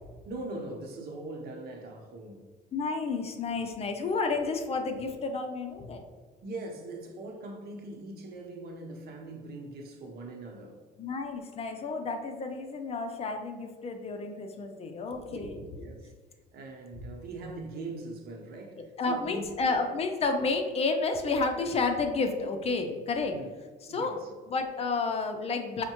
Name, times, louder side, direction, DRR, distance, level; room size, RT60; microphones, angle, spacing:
voice 1, 0.2-2.5 6.4-10.8 15.3-15.4 15.8-16.1 16.5-19.5 23.3-23.5 23.9-24.3, right 2 dB, 65° right, 0.7 m, -41 dB
voice 2, 2.7-6.0 11.0-15.9 19.0-23.4 23.9-24.2 24.5-25.8, left 3 dB, 35° left, 0.5 m, -31 dB
5.3 x 2.1 x 2.9 m
cardioid pair, 110°, 17 cm